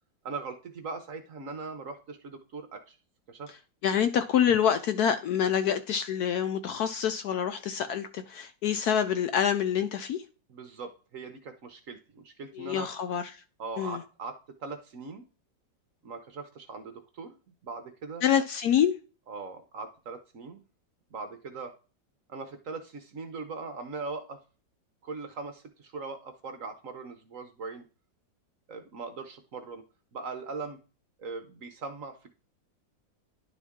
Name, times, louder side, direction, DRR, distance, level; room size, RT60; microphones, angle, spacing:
voice 1, 0.2-3.0 3.3-3.5 10.5-12.9 13.6-15.2 16.0-17.4 17.6-18.2 19.3-20.6 21.1-21.7 22.3-24.4 25.0-27.9 28.7-29.8 30.1-30.8 31.2-32.3, right 4 dB, 55° right, 1.0 m, -40 dB
voice 2, 3.8-10.2 12.5-13.3 13.8-14.0 18.2-19.0, left 8 dB, 70° left, 1.0 m, -26 dB
11.0 x 4.1 x 3.6 m
omnidirectional pair, 2.0 m